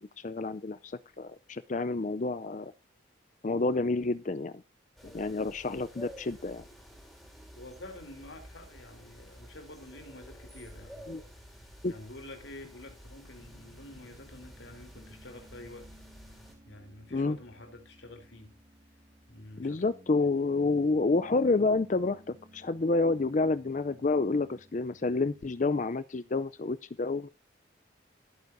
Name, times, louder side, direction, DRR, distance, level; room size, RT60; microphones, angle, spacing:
voice 1, 0.2-2.7 3.4-4.5 5.0-6.6 11.1-11.2 11.8-11.9 17.1-17.4 19.6-27.3, left 3 dB, 40° left, 0.5 m, -29 dB
sound 1, 5.0-16.5, equal, ahead, 4.4 m, -51 dB
voice 2, 7.6-11.1 11.9-15.9 16.6-18.6 19.3-19.8 20.4-20.6, left 1 dB, 70° left, 3.5 m, -48 dB
Piano, 13.4-25.9, right 1 dB, 35° right, 1.5 m, -58 dB
16.0 x 9.3 x 2.6 m
head